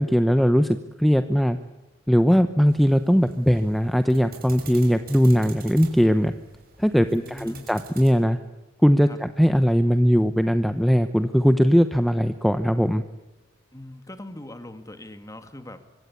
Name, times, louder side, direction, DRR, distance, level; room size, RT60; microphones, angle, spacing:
voice 1, 0.0-1.6 2.1-6.3 6.8-8.4 8.8-13.0, equal, ahead, 9 dB, 0.9 m, -20 dB
sound 1, 2.7-8.1, right 5 dB, 50° right, 6.1 m, -46 dB
voice 2, 7.1-7.7 9.1-9.2 13.7-15.9, left 1 dB, 15° left, 8 dB, 2.4 m, -41 dB
25.5 x 24.5 x 8.5 m, 1.0 s
head